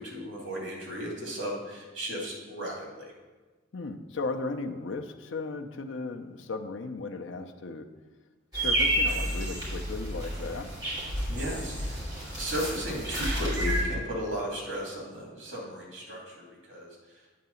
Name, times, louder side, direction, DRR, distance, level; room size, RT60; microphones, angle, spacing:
voice 1, 0.0-3.1 11.3-12.1 12.4-17.2, equal, 70° right, -2 dB, 2.6 m, -35 dB
voice 2, 3.7-7.9 8.5-10.8, left 3 dB, 70° left, 7 dB, 0.6 m, -36 dB
sound 1, 8.5-13.8, right 1 dB, 20° right, 2.6 m, -30 dB
8.5 x 3.9 x 6.9 m, 1.3 s
head